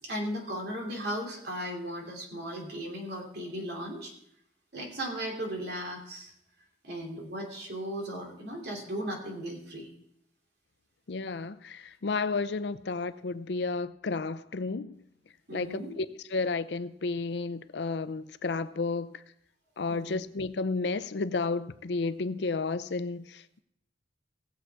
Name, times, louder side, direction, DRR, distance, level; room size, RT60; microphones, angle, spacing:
voice 1, 0.0-4.1 4.7-6.3 6.8-9.9 15.5-15.9 19.9-20.2, equal, 65° right, 2.9 m, -36 dB
voice 2, 11.1-15.0 15.5-16.1 16.3-19.2 19.8-23.6, left 3 dB, 70° left, 0.6 m, -32 dB
17.5 x 7.5 x 4.6 m
head